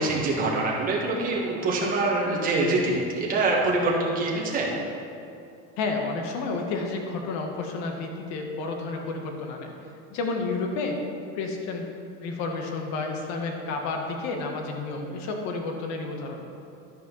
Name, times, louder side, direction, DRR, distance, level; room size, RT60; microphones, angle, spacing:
voice 1, 0.0-4.7, right 2 dB, 25° right, -3 dB, 1.6 m, -25 dB
voice 2, 5.8-9.7 10.1-11.0 11.3-11.8 12.2-16.4, left 3 dB, 50° left, 2 dB, 1.4 m, -31 dB
11.0 x 5.4 x 5.4 m, 2.6 s
supercardioid pair, 155°, 35 cm